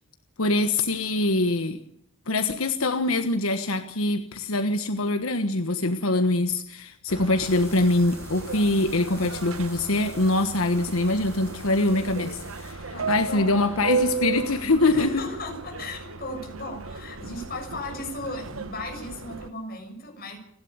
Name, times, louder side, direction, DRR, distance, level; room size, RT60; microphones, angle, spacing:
voice 1, 0.4-1.8 2.3-15.1, left 2 dB, 90° left, 8 dB, 1.4 m, -24 dB
Subway metro underground, 7.1-19.5, right 4 dB, 80° right, 1.3 m, -34 dB
sound 1, 7.4-12.7, left 3 dB, 15° left, 6.2 m, -49 dB
voice 2, 12.9-13.5 14.8-20.4, left 1 dB, 45° left, 3 dB, 7.0 m, -36 dB
29.5 x 11.5 x 8.1 m, 0.69 s
head